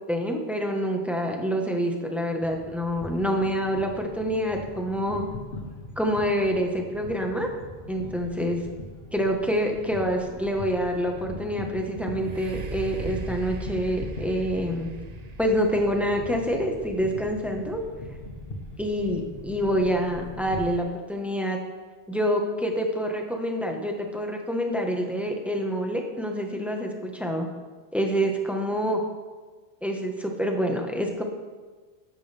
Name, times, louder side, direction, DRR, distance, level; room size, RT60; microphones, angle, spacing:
voice 1, 0.1-5.2 6.0-7.5 7.9-8.6 9.1-14.9 15.4-17.8 18.8-21.6 22.1-27.5 27.9-29.0 29.8-31.2, equal, ahead, 2 dB, 1.2 m, -27 dB
sound 1, 2.4-20.8, left 2 dB, 65° left, 1.6 m, -41 dB
sound 2, 12.2-20.0 20.6-20.7, right 3 dB, 45° right, 0.8 m, -40 dB
13.5 x 10.5 x 3.4 m, 1.3 s
omnidirectional pair, 1.1 m